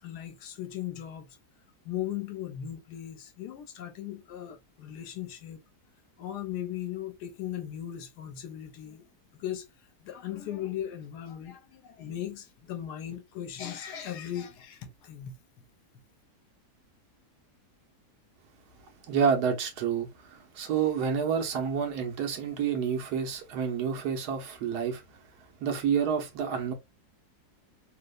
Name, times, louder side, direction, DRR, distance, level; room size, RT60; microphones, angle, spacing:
voice 1, 0.0-1.4 1.8-5.6 6.2-9.1 9.4-9.7 10.0-15.3, left 11 dB, 80° left, 1.1 m, -38 dB
voice 2, 19.1-25.0 25.6-26.7, right 7 dB, 80° right, 1.3 m, -29 dB
3.2 x 2.0 x 2.3 m
omnidirectional pair, 1.7 m